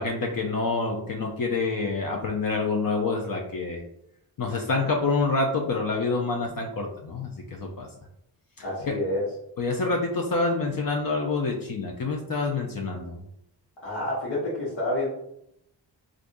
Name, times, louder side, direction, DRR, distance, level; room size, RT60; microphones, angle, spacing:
voice 1, 0.0-3.8 4.4-7.9 8.6-9.0 9.6-13.2, left 3 dB, 45° left, 1 dB, 0.6 m, -27 dB
voice 2, 8.6-9.2 13.8-15.1, left 1 dB, 65° left, -7 dB, 1.2 m, -28 dB
3.3 x 2.5 x 2.6 m, 0.77 s
cardioid pair, 45°, 46 cm